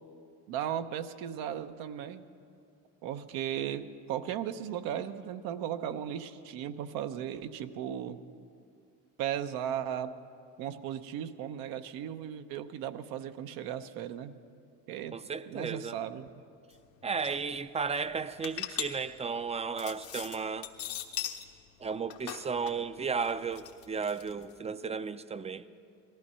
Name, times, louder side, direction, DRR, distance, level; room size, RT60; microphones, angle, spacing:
voice 1, 0.5-2.2 3.0-8.2 9.2-10.1 10.6-14.3 14.9-15.2 15.5-16.3, right 10 dB, 75° right, 0.8 m, -36 dB
voice 2, 15.1-16.0 17.0-20.7 21.8-25.7, right 5 dB, 20° right, 0.5 m, -34 dB
sound 1, 16.7-16.8 17.0-17.4 17.9-21.5 21.8-24.5, left 11 dB, 80° left, 1.3 m, -40 dB
18.5 x 14.0 x 5.5 m
supercardioid pair, 95°, 36 cm